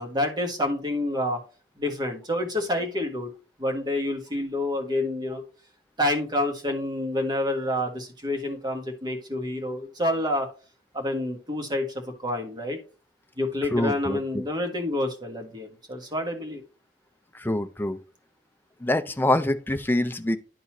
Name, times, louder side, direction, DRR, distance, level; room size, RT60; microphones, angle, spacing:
voice 1, 0.0-1.4 1.8-3.3 3.6-5.4 6.0-10.5 10.9-12.8 13.4-16.6, left 1 dB, 25° right, 1.5 m, -28 dB
voice 2, 13.7-14.2 17.3-18.0 18.8-20.4, left 1 dB, 10° left, 0.5 m, -25 dB
12.0 x 4.0 x 2.9 m
head